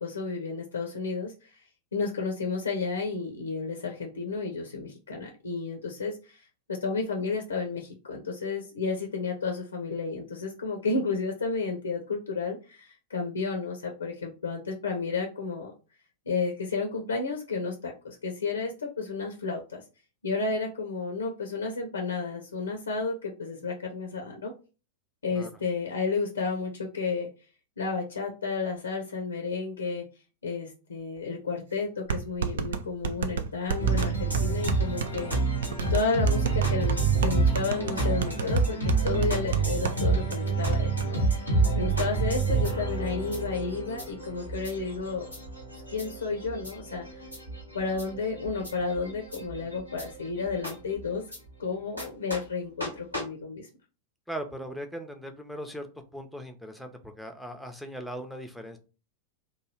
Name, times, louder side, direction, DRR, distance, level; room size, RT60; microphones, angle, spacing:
voice 1, 0.0-15.7 16.3-19.8 20.2-24.5 25.2-27.3 27.8-30.1 30.4-35.3 35.9-41.2 41.8-45.3 45.7-47.2 47.7-51.2 51.6-53.7, left 4 dB, 70° left, 3 dB, 0.5 m, -32 dB
sound 1, 31.2-31.3 32.1-40.0 40.3-40.4 40.7-41.1, right 6 dB, 65° right, 0.3 m, -32 dB
sound 2, 33.8-51.4 52.0-52.1 52.3-52.4 52.8-52.9 53.1-53.2, right 4 dB, 90° right, 1.2 m, -28 dB
voice 2, 54.3-55.9 56.1-58.8, equal, ahead, 5 dB, 0.5 m, -39 dB
3.0 x 2.2 x 3.0 m, 0.33 s
figure-of-eight pair, 90°, 0 cm